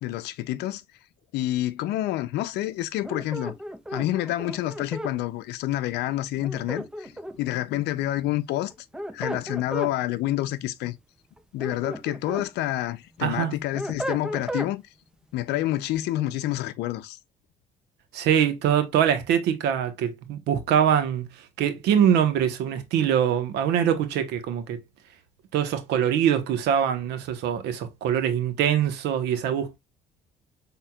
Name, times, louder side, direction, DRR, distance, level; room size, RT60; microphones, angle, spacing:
voice 1, 0.0-0.8 1.3-3.5 3.9-8.7 9.1-10.9 11.5-14.8 15.3-17.2, left 15 dB, 80° left, 0.6 m, -28 dB
sound 1, 3.0-5.1 6.4-7.5 8.7-9.9 11.4-12.5 12.9-14.7, right 1 dB, 5° right, 0.5 m, -34 dB
voice 2, 13.2-13.5 18.1-21.2 21.6-24.8 25.5-29.8, right 9 dB, 85° right, 1.1 m, -23 dB
5.9 x 3.6 x 2.3 m
cardioid pair, 110°, 17 cm